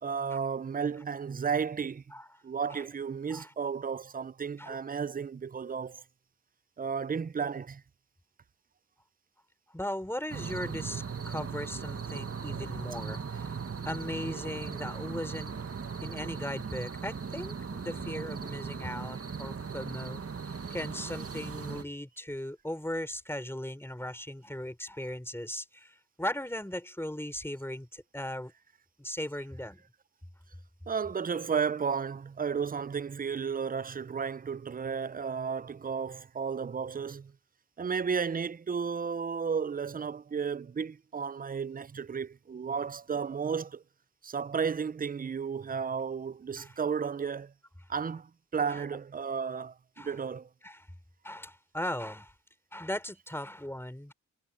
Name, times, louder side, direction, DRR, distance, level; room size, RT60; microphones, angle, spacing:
voice 1, 0.0-2.0 2.4-6.0 6.8-7.8 30.9-37.3 37.8-43.8 44.2-47.5 47.9-50.5, right 6 dB, 25° right, 0.5 m, -33 dB
voice 2, 9.7-13.5 13.9-15.5 16.0-20.2 20.7-28.5 29.0-29.8 46.6-46.7 48.7-48.8 50.0-50.1 50.6-50.9 51.2-52.3 52.7-54.1, left 1 dB, 5° left, 3.7 m, -38 dB
sound 1, 10.3-21.8, right 6 dB, 45° right, 1.6 m, -38 dB
cardioid pair, 60°, 34 cm